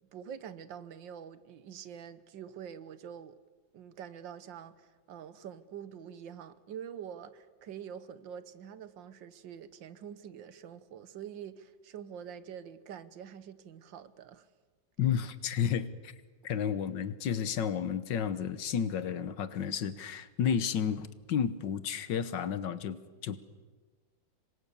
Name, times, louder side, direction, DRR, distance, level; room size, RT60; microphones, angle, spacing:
voice 1, 0.1-3.4 3.7-14.5, right 8 dB, 85° right, 1.7 m, -46 dB
voice 2, 15.0-16.1 16.4-23.4, left 8 dB, 75° left, 1.8 m, -32 dB
27.0 x 22.0 x 6.9 m
omnidirectional pair, 2.0 m